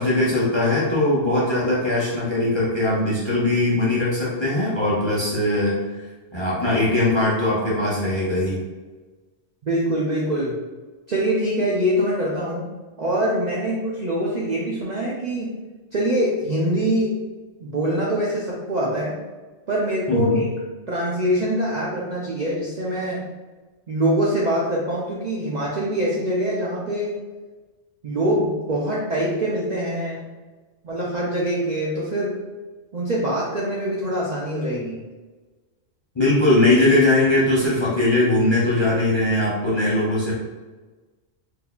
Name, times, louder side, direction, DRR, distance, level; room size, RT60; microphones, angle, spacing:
voice 1, 0.0-5.8 6.3-8.6 20.1-20.4 36.1-40.3, left 2 dB, 30° left, -7 dB, 0.6 m, -20 dB
voice 2, 9.6-10.5 11.1-12.7 13.0-15.5 15.9-17.2 17.6-19.1 19.7-20.5 20.9-23.3 23.9-27.2 28.0-30.2 30.8-32.4 32.9-35.0, right 1 dB, 55° right, -5 dB, 0.5 m, -24 dB
3.7 x 2.7 x 2.3 m, 1.3 s
omnidirectional pair, 1.3 m